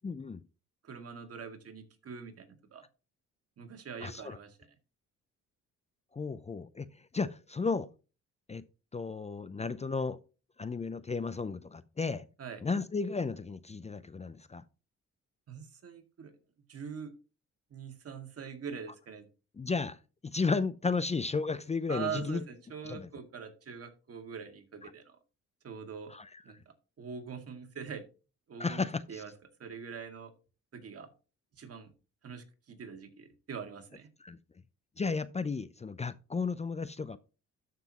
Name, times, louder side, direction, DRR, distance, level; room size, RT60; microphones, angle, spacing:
voice 1, 0.0-0.4 4.0-4.4 6.1-6.9 7.1-7.9 8.5-8.6 8.9-10.2 10.6-12.2 12.6-14.6 19.6-20.0 20.2-22.4 22.9-23.1 26.1-26.3 28.6-29.2 34.2-34.4 35.0-37.2, left 4 dB, 20° left, 0.6 m, -33 dB
voice 2, 0.8-2.9 3.6-4.6 12.4-12.7 15.5-16.4 16.7-17.1 17.7-19.3 21.9-25.2 25.6-26.1 26.4-26.6 27.0-28.0 28.5-28.8 29.1-29.3 29.6-30.3 30.7-31.1 31.6-31.9 32.2-34.1, right 6 dB, 50° right, 2.1 m, -43 dB
13.0 x 6.0 x 3.0 m
cardioid pair, 90°, 30 cm